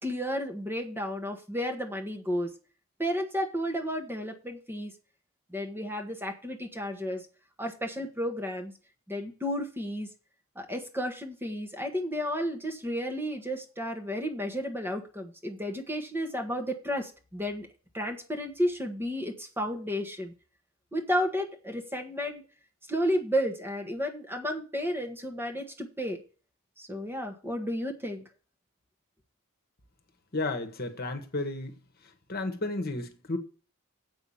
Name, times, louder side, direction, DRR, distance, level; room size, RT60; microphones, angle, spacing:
voice 1, 0.0-2.5 3.0-4.9 5.5-7.3 7.6-8.7 9.1-10.1 10.5-17.7 17.9-20.3 20.9-22.4 22.9-26.2 26.8-28.3, equal, 10° right, 1.3 m, -32 dB
voice 2, 30.3-31.8 32.3-33.4, left 2 dB, 45° left, 1.4 m, -32 dB
8.1 x 5.9 x 7.0 m
head